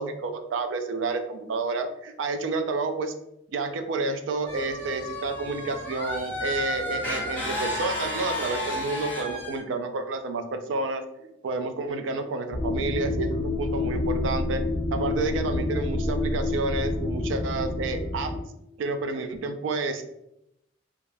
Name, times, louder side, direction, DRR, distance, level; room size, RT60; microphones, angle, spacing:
voice 1, 0.0-3.1 3.5-14.6 14.9-18.3 18.8-20.0, right 3 dB, 75° right, 8 dB, 0.3 m, -30 dB
sound 1, 4.5-9.6, left 1 dB, 10° left, 0.6 m, -32 dB
sound 2, 12.5-18.4, left 2 dB, 70° left, 0.5 m, -28 dB
2.4 x 2.1 x 3.1 m, 0.82 s
head